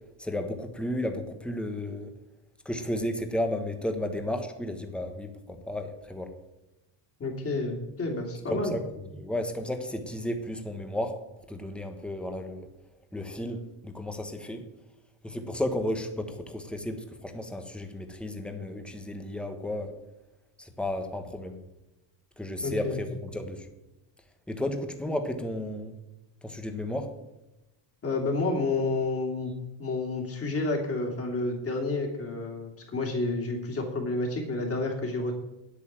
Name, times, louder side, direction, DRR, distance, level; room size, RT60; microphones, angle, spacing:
voice 1, 0.2-2.1 2.6-6.3 8.5-8.8 9.1-11.2 11.5-12.7 13.1-14.6 15.2-19.9 20.6-21.6 22.4-23.7 24.5-26.0 26.4-27.1, left 1 dB, ahead, 6 dB, 1.1 m, -33 dB
voice 2, 7.2-8.8 22.6-23.0 28.0-29.5 29.8-35.4, left 2 dB, 30° left, 1 dB, 2.8 m, -30 dB
9.8 x 8.5 x 7.5 m, 0.96 s
cardioid pair, 155°, 48 cm